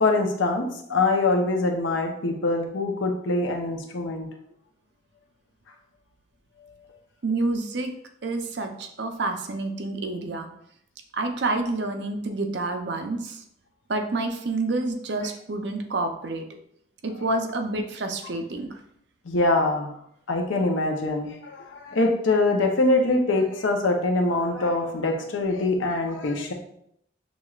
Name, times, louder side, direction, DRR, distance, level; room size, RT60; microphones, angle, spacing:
voice 1, 0.0-4.3 19.3-19.9 20.3-26.5, left 2 dB, 80° left, 2 dB, 0.7 m, -24 dB
voice 2, 7.2-7.9 8.2-10.5 11.1-13.4 13.9-16.4 17.0-18.8, right 2 dB, 60° right, 5 dB, 0.6 m, -28 dB
6.2 x 3.0 x 2.4 m, 0.72 s
head